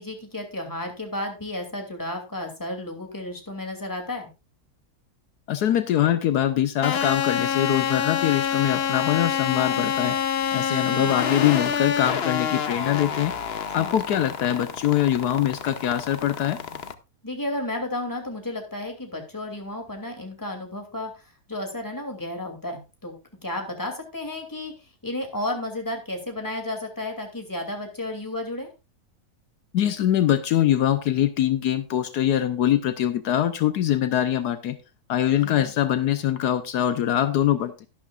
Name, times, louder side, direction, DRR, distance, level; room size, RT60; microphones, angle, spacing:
voice 1, 0.0-4.3 10.7-11.2 13.8-14.3 17.2-23.1 23.4-28.7 35.4-35.7, left 1 dB, 10° left, 3 dB, 2.6 m, -33 dB
voice 2, 5.5-10.2 10.5-13.3 13.7-16.6 29.7-34.8 35.1-37.9, left 11 dB, 80° left, 10 dB, 1.3 m, -23 dB
sound 1, 6.8-16.9, left 8 dB, 50° left, 0.8 m, -27 dB
12.5 x 11.5 x 2.4 m, 0.28 s
omnidirectional pair, 1.7 m